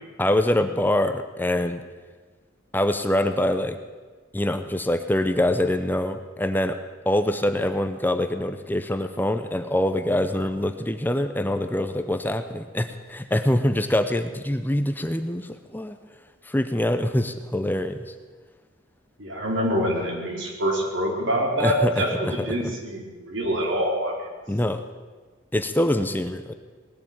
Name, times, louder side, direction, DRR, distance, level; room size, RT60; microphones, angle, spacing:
voice 1, 0.2-1.8 2.7-3.8 4.3-6.8 7.1-16.0 16.5-18.1 21.6-22.6 24.5-24.8 25.5-26.5, left 1 dB, 10° left, 8 dB, 0.7 m, -24 dB
voice 2, 19.2-24.1, equal, 80° right, -1 dB, 3.9 m, -25 dB
19.5 x 7.7 x 8.8 m, 1.4 s
head